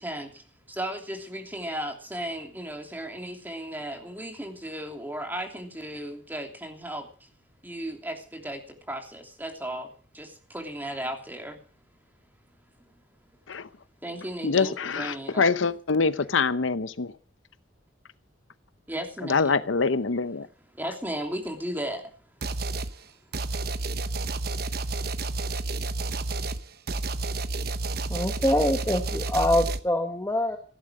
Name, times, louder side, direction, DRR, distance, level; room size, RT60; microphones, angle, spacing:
voice 1, 0.0-7.3 7.6-11.6 14.0-15.7 18.9-19.5 20.7-22.1, right 1 dB, 10° right, 3.0 m, -35 dB
voice 2, 14.4-17.1 19.3-20.5, left 4 dB, 85° left, 0.8 m, -25 dB
sound 1, 22.4-22.9 23.3-29.8, right 2 dB, 55° right, 1.0 m, -30 dB
voice 3, 28.1-30.6, left 1 dB, 15° left, 1.3 m, -24 dB
16.5 x 11.5 x 6.4 m
head